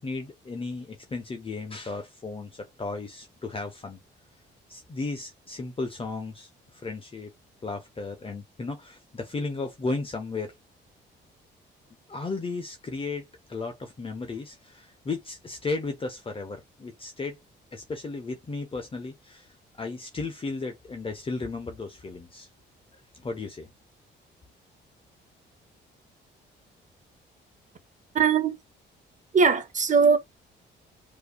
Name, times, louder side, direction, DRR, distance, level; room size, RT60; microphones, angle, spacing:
voice 1, 0.0-4.0 4.7-7.3 7.6-10.5 12.1-17.4 17.7-22.5 22.9-23.7, left 3 dB, 30° left, 0.8 m, -35 dB
voice 2, 28.1-28.6 29.3-30.2, right 5 dB, 40° right, 1.1 m, -20 dB
4.6 x 2.7 x 2.2 m
cardioid pair, 90°, 20 cm